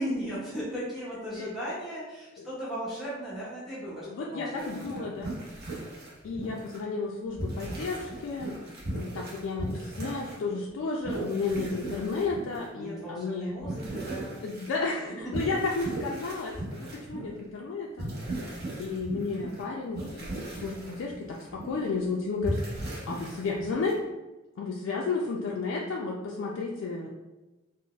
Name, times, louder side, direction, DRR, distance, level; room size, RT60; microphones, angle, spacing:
voice 1, 0.0-5.1 12.7-14.4, equal, ahead, -9 dB, 0.6 m, -36 dB
voice 2, 4.1-5.3 6.2-8.5 8.9-13.5 14.4-16.5 16.8-18.1 18.8-22.6 23.1-24.0 24.6-27.1, left 4 dB, 65° left, -2 dB, 0.3 m, -32 dB
sound 1, 4.6-6.8 7.3-10.4 10.7-12.7 13.0-13.2 13.6-17.4 18.0-19.6 19.9-22.0 22.4-23.9, right 1 dB, 50° right, 0.7 m, -37 dB
3.8 x 2.0 x 2.3 m, 1.1 s
head